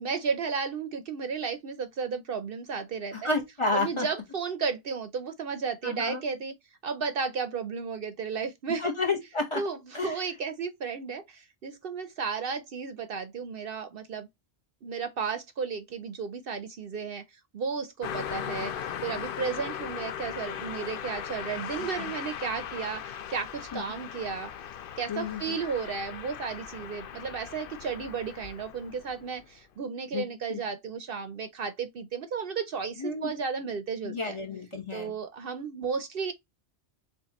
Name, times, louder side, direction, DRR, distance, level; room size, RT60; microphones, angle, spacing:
voice 1, 0.0-3.3 3.7-6.5 6.8-8.9 9.6-14.3 14.8-17.2 17.5-18.7 19.0-24.5 25.0-34.4 34.9-36.3, right 5 dB, 60° right, 0.8 m, -33 dB
voice 2, 3.1-4.0 5.8-6.2 8.8-9.6 9.9-10.2 21.8-22.1 23.7-23.8 25.1-25.4 30.1-30.2 30.5-30.6 33.0-33.3 34.0-35.1, left 3 dB, 25° left, 1.1 m, -30 dB
Car passing by, 18.0-29.5, left 9 dB, 60° left, 0.7 m, -38 dB
6.6 x 2.5 x 2.9 m
omnidirectional pair, 1.2 m